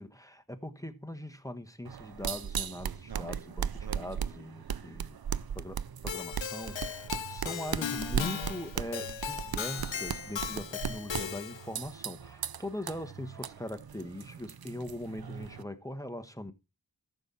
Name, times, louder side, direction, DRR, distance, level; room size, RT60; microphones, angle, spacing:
voice 1, 0.0-5.2 5.5-16.5, left 1 dB, 5° left, 1.2 m, -41 dB
sound 1, 1.9-15.6, right 8 dB, 55° right, 0.5 m, -37 dB
Keyboard (musical), 6.1-11.7, left 8 dB, 90° left, 0.6 m, -37 dB
14.0 x 7.0 x 4.2 m
wide cardioid pair, 40°, 44 cm